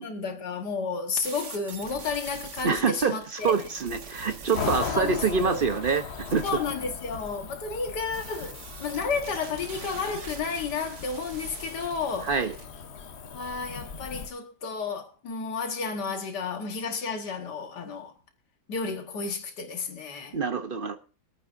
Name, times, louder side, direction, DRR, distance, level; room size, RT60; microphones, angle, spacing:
voice 1, 0.0-3.6 4.7-5.6 6.4-12.3 13.3-18.1 18.7-20.4, left 5 dB, 80° left, 2.0 m, -32 dB
sound 1, 1.2-6.7 8.1-12.7, right 5 dB, 85° right, 2.0 m, -44 dB
voice 2, 2.6-6.6 12.2-12.6 20.3-21.0, right 5 dB, 45° right, 0.7 m, -26 dB
Cricket / Motor vehicle (road), 4.5-14.3, left 6 dB, 50° left, 1.0 m, -38 dB
24.0 x 9.0 x 2.6 m
omnidirectional pair, 1.8 m